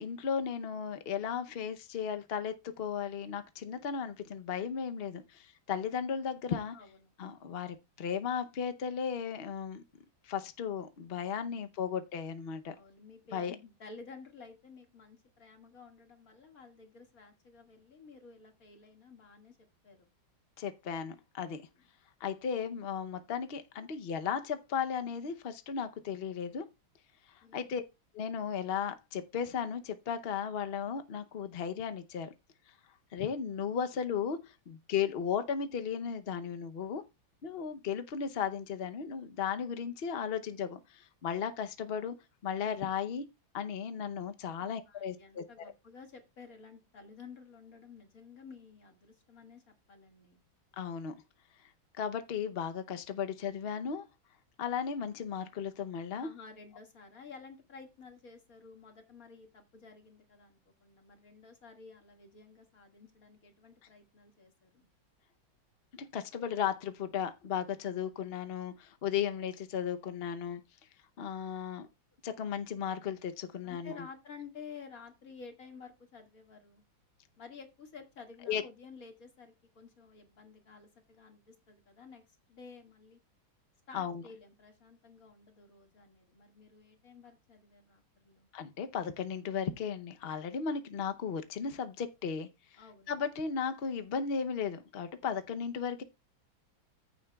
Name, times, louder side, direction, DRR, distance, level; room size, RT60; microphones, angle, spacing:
voice 1, 0.0-6.7 7.2-9.8 10.2-12.8 13.3-13.5 20.6-21.7 22.2-26.7 27.3-27.8 28.1-32.3 33.1-37.0 37.4-42.2 42.4-43.2 43.5-45.4 50.8-51.2 52.0-54.1 54.6-56.3 65.9-70.6 71.2-71.9 72.2-73.9 78.5-78.6 83.9-84.2 88.5-92.5 93.1-96.0, left 7 dB, 85° left, 0.5 m, -35 dB
voice 2, 6.7-7.1 12.7-20.1 27.4-27.7 44.6-50.4 56.2-64.9 73.6-76.8 77.4-82.2 82.5-83.2 83.9-88.5 92.8-93.1, left 5 dB, 45° left, 2.3 m, -52 dB
14.5 x 6.9 x 2.3 m
omnidirectional pair, 2.2 m